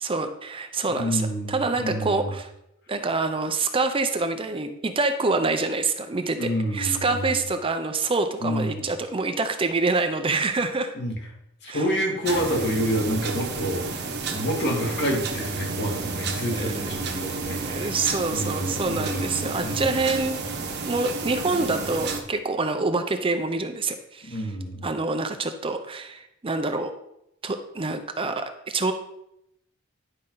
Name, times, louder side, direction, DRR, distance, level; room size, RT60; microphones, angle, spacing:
voice 1, 0.0-2.5 2.9-10.9 11.7-11.9 16.5-16.8 17.5-20.4 20.9-24.5 24.8-26.9 27.4-28.9, right 3 dB, 25° right, 8 dB, 0.6 m, -26 dB
voice 2, 1.0-2.3 6.4-7.4 8.4-8.8 10.9-11.1 11.6-14.1 14.3-18.0 18.3-20.0 24.2-24.9, equal, 55° left, 0 dB, 2.1 m, -28 dB
sound 1, 12.2-22.2, right 4 dB, 55° right, 1.1 m, -31 dB
10.5 x 5.4 x 3.8 m, 0.80 s
head